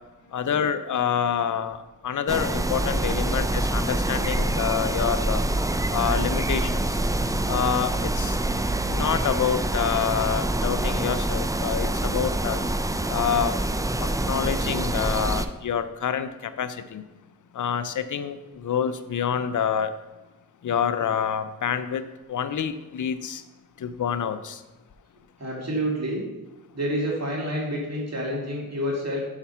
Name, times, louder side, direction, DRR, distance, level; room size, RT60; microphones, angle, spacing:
voice 1, 0.3-5.4 5.9-7.0 7.5-8.4 8.9-12.6 13.1-13.6 14.0-17.0 17.5-19.9 20.6-22.0 22.3-23.4 23.8-24.6, left 8 dB, 65° left, 11 dB, 0.7 m, -27 dB
sound 1, 2.3-15.5, right 1 dB, 10° right, 0.5 m, -26 dB
voice 2, 2.9-3.4 25.4-26.2 26.7-29.2, equal, 50° right, -3 dB, 2.5 m, -29 dB
5.8 x 5.8 x 5.6 m, 1.1 s
cardioid pair, 45°, 33 cm